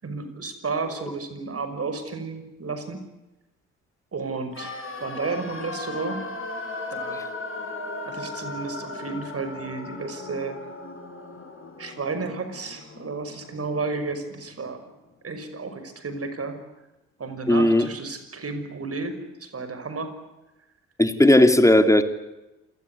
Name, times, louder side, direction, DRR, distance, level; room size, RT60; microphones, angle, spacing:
voice 1, 0.0-3.0 4.1-6.2 6.9-7.3 8.0-10.7 11.8-14.8 15.2-16.6 17.2-20.1, right 4 dB, 35° right, 9 dB, 5.9 m, -32 dB
sound 1, 4.5-14.5 14.7-14.8, left 3 dB, 35° left, 6.4 m, -37 dB
voice 2, 17.5-17.9 21.0-22.0, left 1 dB, 10° left, 8 dB, 3.0 m, -16 dB
27.5 x 18.5 x 9.5 m, 1.0 s
hypercardioid pair, 50°, 38 cm